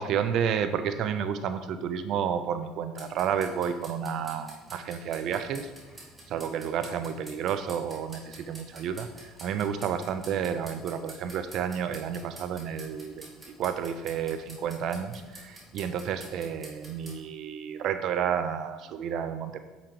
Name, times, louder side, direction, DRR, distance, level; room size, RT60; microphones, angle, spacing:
voice 1, 0.0-5.7 6.3-9.1 9.4-13.3 13.6-19.6, right 8 dB, 60° right, 10 dB, 0.4 m, -31 dB
sound 1, 3.0-17.2, right 1 dB, 15° right, 2.0 m, -49 dB
7.3 x 5.1 x 2.9 m, 1.3 s
supercardioid pair, 90°, 0 cm